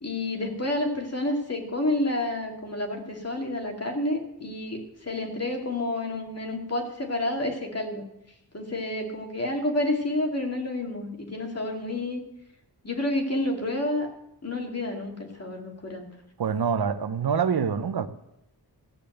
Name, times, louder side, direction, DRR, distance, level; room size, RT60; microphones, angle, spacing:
voice 1, 0.0-8.0 8.5-12.2 12.8-14.1 14.4-16.1, left 1 dB, 40° left, 2.7 m, -29 dB
voice 2, 16.4-18.1, right 6 dB, 70° right, 0.8 m, -25 dB
15.5 x 6.9 x 8.0 m
wide cardioid pair, 75°, 39 cm